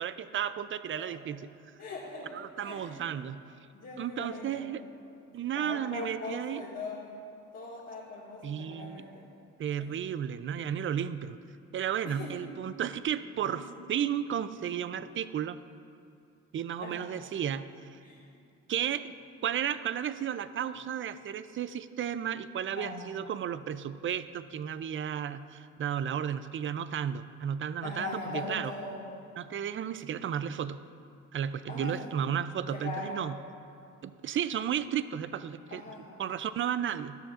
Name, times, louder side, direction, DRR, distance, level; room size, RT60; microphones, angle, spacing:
voice 1, 0.0-1.5 2.3-3.4 4.0-4.8 5.3-6.6 8.4-9.0 9.6-11.4 11.7-13.6 13.9-15.6 16.5-18.0 18.7-19.1 19.4-28.7 29.4-30.8 31.3-33.3 34.0-35.8 36.2-37.2, right 9 dB, 40° right, 13 dB, 0.4 m, -33 dB
voice 2, 1.8-3.0 3.7-4.8 5.1-5.2 5.5-7.2 7.5-9.3 9.8-10.0 12.0-12.4 13.4-13.6 16.8-17.1 18.0-18.3 22.7-23.0 27.8-29.0 31.7-32.1 32.7-33.3 35.7-36.2, left 2 dB, 55° left, -7 dB, 2.1 m, -40 dB
12.0 x 11.5 x 2.5 m, 2.5 s
cardioid pair, 90°, 30 cm